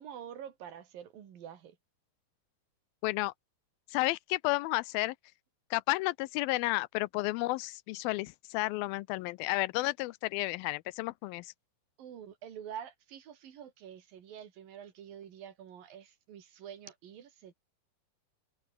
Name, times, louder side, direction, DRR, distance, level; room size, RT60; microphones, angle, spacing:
voice 1, 0.0-1.8 12.0-17.5, right 9 dB, 65° right, 4.2 m, -47 dB
voice 2, 3.0-3.3 3.9-5.2 5.7-11.5, left 20 dB, 80° left, 2.3 m, -32 dB
omnidirectional pair, 4.5 m